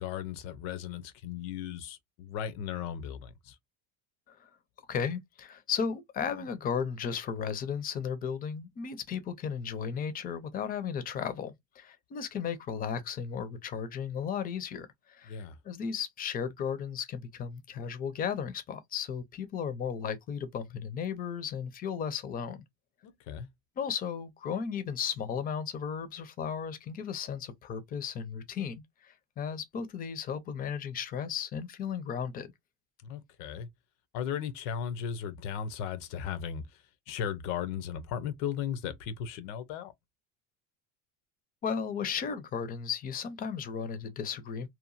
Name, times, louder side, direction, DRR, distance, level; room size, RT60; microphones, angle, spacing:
voice 1, 0.0-3.6 15.3-15.6 23.0-23.5 33.0-33.7 34.1-39.9, left 8 dB, 85° left, 0.7 m, -36 dB
voice 2, 4.9-22.6 23.8-32.5 41.6-44.7, left 7 dB, 25° left, 0.4 m, -35 dB
2.9 x 2.2 x 2.4 m
cardioid pair, 150°, 36 cm